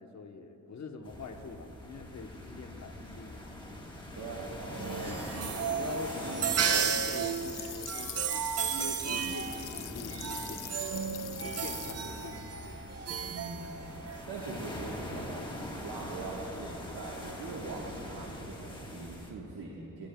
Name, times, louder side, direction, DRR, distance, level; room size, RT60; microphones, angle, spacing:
voice 1, 0.0-3.4 5.0-5.2 5.8-8.4 8.7-10.7 11.4-12.4, left 4 dB, 50° left, 4 dB, 1.1 m, -44 dB
sound 1, 1.0-19.3, left 1 dB, 15° left, 1.5 m, -43 dB
voice 2, 4.1-5.5 13.2-13.9 14.3-20.1, right 3 dB, 90° right, -3 dB, 1.5 m, -42 dB
sound 2, 4.7-14.2, right 6 dB, 40° right, 0.6 m, -34 dB
sound 3, 6.8-11.9, left 12 dB, 85° left, 0.6 m, -44 dB
19.5 x 18.5 x 2.3 m, 2.8 s
wide cardioid pair, 145°, 36 cm